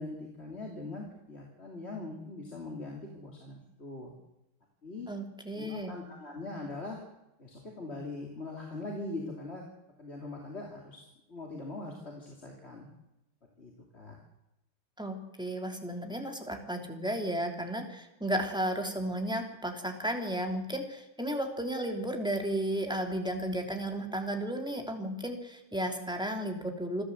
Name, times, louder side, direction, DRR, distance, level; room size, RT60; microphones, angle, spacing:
voice 1, 0.0-4.1 4.8-5.1 5.6-7.0 7.4-9.6 10.0-11.0 11.3-12.9 13.6-14.2, left 2 dB, 30° left, 0 dB, 3.2 m, -41 dB
voice 2, 5.1-6.0 15.0-27.0, right 1 dB, ahead, 3 dB, 2.9 m, -33 dB
27.5 x 12.5 x 8.0 m, 0.94 s
omnidirectional pair, 2.3 m